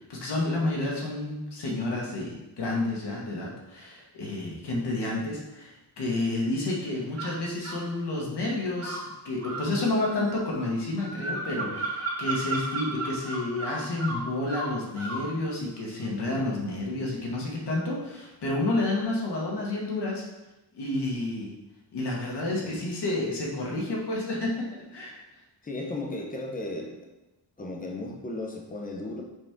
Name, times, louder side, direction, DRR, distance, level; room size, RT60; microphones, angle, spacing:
voice 1, 0.1-20.2 20.7-21.5 21.9-25.2, left 2 dB, 70° left, -3 dB, 1.7 m, -30 dB
sound 1, 7.2-7.9 8.8-15.3, right 2 dB, 35° right, 1.1 m, -34 dB
voice 2, 25.6-27.1 27.6-29.2, left 2 dB, 20° left, 1 dB, 0.9 m, -35 dB
6.2 x 4.2 x 3.6 m, 1.0 s
wide cardioid pair, 140°, 42 cm